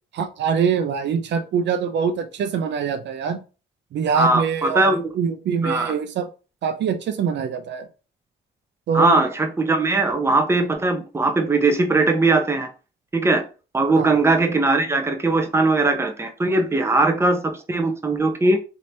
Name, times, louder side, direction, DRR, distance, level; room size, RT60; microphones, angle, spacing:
voice 1, 0.1-3.4 3.9-6.3 6.6-7.9 8.9-9.2 13.9-14.1, right 6 dB, 65° right, 9 dB, 0.5 m, -24 dB
voice 2, 4.1-5.1 5.6-5.9 8.9-12.7 13.1-13.4 13.7-18.6, right 2 dB, 15° right, 5 dB, 0.6 m, -20 dB
3.2 x 2.8 x 2.8 m, 0.33 s
cardioid pair, 90°, 20 cm